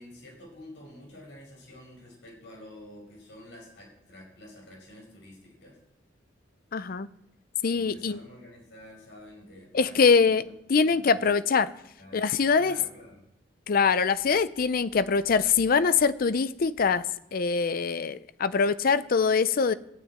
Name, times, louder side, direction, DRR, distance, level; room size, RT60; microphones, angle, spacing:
voice 1, 0.0-5.8 7.7-10.5 10.8-11.4 12.0-12.2 12.6-13.2, left 1 dB, 70° left, -1 dB, 5.0 m, -49 dB
voice 2, 6.7-7.1 7.6-8.2 9.7-10.4 10.7-11.7 12.1-12.8 13.7-17.0 17.3-19.7, left 5 dB, 50° left, 16 dB, 0.5 m, -23 dB
13.5 x 6.4 x 8.9 m, 0.83 s
head